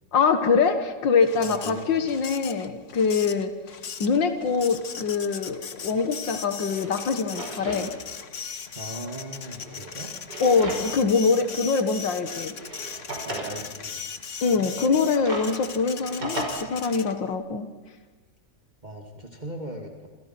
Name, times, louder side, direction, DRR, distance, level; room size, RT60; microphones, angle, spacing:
voice 1, 0.1-3.5 4.0-7.9 10.4-12.5 14.4-17.7, left 5 dB, 90° left, 9 dB, 2.3 m, -24 dB
Printer, 1.2-17.3, left 6 dB, 45° left, 1.5 m, -38 dB
voice 2, 1.4-2.1 8.7-10.1 13.2-14.0 18.8-20.1, right 1 dB, 25° right, 3 dB, 2.6 m, -38 dB
Drawer open or close, 5.8-5.9 6.5-7.9 8.2-8.3 9.4-11.1 11.5-11.6 12.4-13.6 14.7-16.5, right 1 dB, 70° right, 6.0 m, -36 dB
28.5 x 27.5 x 6.0 m, 1.3 s
omnidirectional pair, 1.9 m